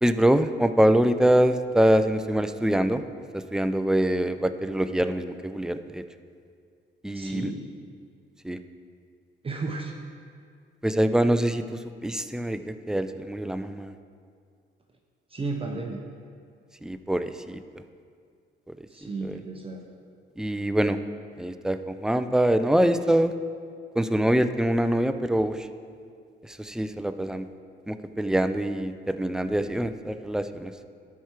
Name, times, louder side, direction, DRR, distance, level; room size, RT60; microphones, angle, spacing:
voice 1, 0.0-3.0 3.3-6.0 7.0-7.5 8.4-8.6 10.8-13.9 16.8-17.6 19.2-19.4 20.4-21.0 21.4-23.3 24.0-25.7 26.4-27.5 27.9-30.7, right 1 dB, 5° right, 10 dB, 0.4 m, -24 dB
voice 2, 7.1-7.6 9.4-9.9 15.3-16.0 18.9-19.8, right 3 dB, 30° right, 1 dB, 0.8 m, -33 dB
12.5 x 4.7 x 4.5 m, 2.2 s
cardioid pair, 90°, 20 cm